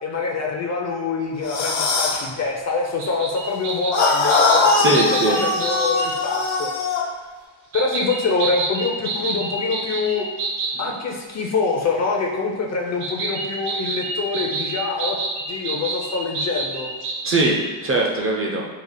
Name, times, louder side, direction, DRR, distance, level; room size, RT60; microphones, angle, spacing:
voice 1, 0.0-4.7 5.3-7.0 7.7-10.2 10.8-15.2 15.5-16.9, left 4 dB, 35° left, 0 dB, 0.4 m, -25 dB
sound 1, 1.4-2.3 3.9-7.1, left 4 dB, 85° left, 0.6 m, -21 dB
sound 2, 3.0-6.2 7.7-10.8 13.0-17.6, right 3 dB, 90° right, 0.8 m, -29 dB
voice 2, 4.7-5.4 10.8-10.9 17.2-18.7, right 2 dB, 30° right, -1 dB, 0.4 m, -21 dB
3.3 x 2.0 x 3.7 m, 1.4 s
cardioid pair, 110°, 48 cm